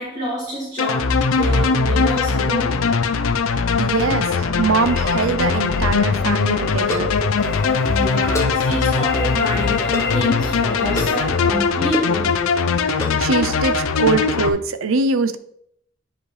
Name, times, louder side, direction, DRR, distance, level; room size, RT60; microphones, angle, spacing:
voice 1, 0.0-2.9 7.9-12.3, equal, 35° right, -7 dB, 2.2 m, -28 dB
sound 1, 0.8-14.5, left 5 dB, 85° left, 0.6 m, -20 dB
voice 2, 3.8-7.1 12.9-15.4, right 4 dB, 80° right, 11 dB, 0.6 m, -22 dB
sound 2, 4.6-5.1 5.4-5.5 5.7-5.8 6.8-7.3 8.3-9.1 9.9-10.3 11.0-11.2 11.9-12.2 13.0-13.3, left 1 dB, 15° left, 0.9 m, -29 dB
sound 3, 4.8-11.7, left 3 dB, 50° left, 1.3 m, -31 dB
9.8 x 5.1 x 3.3 m, 0.69 s
head